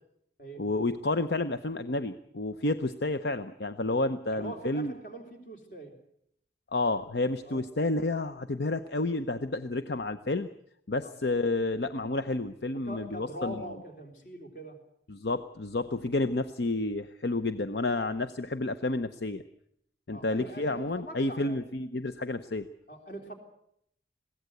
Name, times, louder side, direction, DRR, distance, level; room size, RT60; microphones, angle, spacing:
voice 1, 0.6-4.9 6.7-10.5 10.9-13.6 15.1-19.4 20.1-22.7, left 2 dB, 70° left, 11 dB, 0.8 m, -30 dB
voice 2, 4.3-5.9 7.4-7.6 9.6-9.7 11.0-11.1 12.8-14.8 20.1-21.6 22.9-23.3, right 1 dB, 45° left, 4 dB, 3.9 m, -42 dB
22.0 x 16.5 x 7.9 m, 0.72 s
head